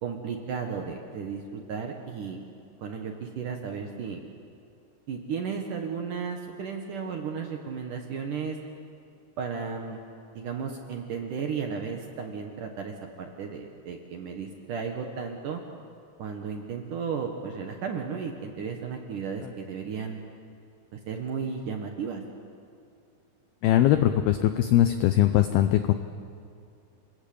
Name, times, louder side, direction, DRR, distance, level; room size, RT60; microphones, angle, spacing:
voice 1, 0.0-2.4 2.8-4.3 5.1-8.6 9.4-10.0 10.4-15.6 16.2-20.2 20.9-22.2, right 6 dB, 65° right, 3 dB, 2.2 m, -34 dB
voice 2, 23.6-25.9, left 12 dB, 90° left, 9 dB, 2.1 m, -21 dB
28.5 x 21.0 x 8.6 m, 2.5 s
omnidirectional pair, 5.5 m